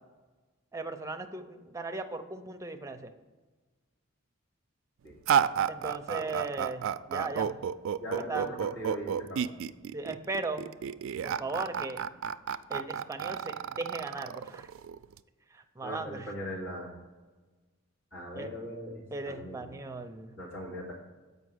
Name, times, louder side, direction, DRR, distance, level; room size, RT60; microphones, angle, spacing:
voice 1, 0.7-3.1 5.7-7.6 8.2-8.5 9.9-10.6 11.2-12.0 12.7-14.7 15.5-16.3 18.3-18.5 19.1-20.3, right 2 dB, 15° right, 6 dB, 0.6 m, -37 dB
sound 1, 5.3-15.2, right 8 dB, 65° right, 0.3 m, -31 dB
voice 2, 8.0-9.5 15.8-16.9 18.1-19.7 20.4-21.0, equal, 65° left, -4 dB, 2.9 m, -40 dB
7.6 x 5.5 x 6.3 m, 1.3 s
head